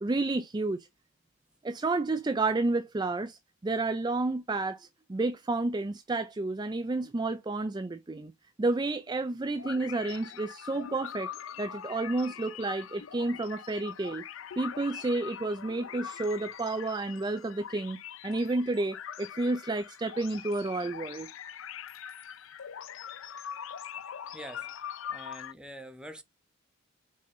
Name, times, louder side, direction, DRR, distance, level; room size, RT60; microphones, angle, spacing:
voice 1, 0.0-0.9 1.6-8.3 8.6-11.3 11.6-14.2 14.6-18.0 18.2-21.3, right 2 dB, 20° right, 0.4 m, -31 dB
sound 1, 9.6-25.5, left 9 dB, 70° left, 0.5 m, -43 dB
voice 2, 24.3-24.7 25.1-26.2, equal, 5° right, 1.1 m, -45 dB
5.4 x 5.2 x 3.8 m
head